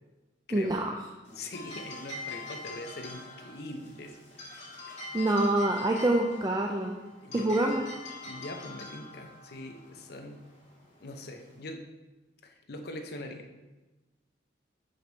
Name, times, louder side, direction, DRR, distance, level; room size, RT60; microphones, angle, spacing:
voice 1, 0.5-0.9 5.1-6.9 7.3-7.8, right 1 dB, 20° right, 2 dB, 0.4 m, -26 dB
voice 2, 1.3-4.2 4.9-5.4 7.2-7.8 8.2-10.4 11.0-11.9 12.4-13.5, left 1 dB, 55° left, 4 dB, 0.7 m, -42 dB
sound 1, 1.3-11.7, left 3 dB, 35° left, 2.0 m, -44 dB
6.1 x 5.1 x 4.0 m, 1.1 s
head